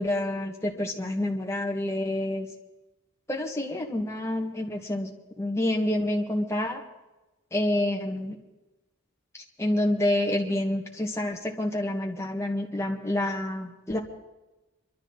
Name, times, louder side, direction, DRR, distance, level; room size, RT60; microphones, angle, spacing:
voice 1, 0.0-2.5 3.3-5.1 5.4-6.8 7.5-8.4 9.6-14.0, left 1 dB, 15° left, 0 dB, 1.8 m, -28 dB
24.0 x 12.5 x 4.0 m, 1.0 s
head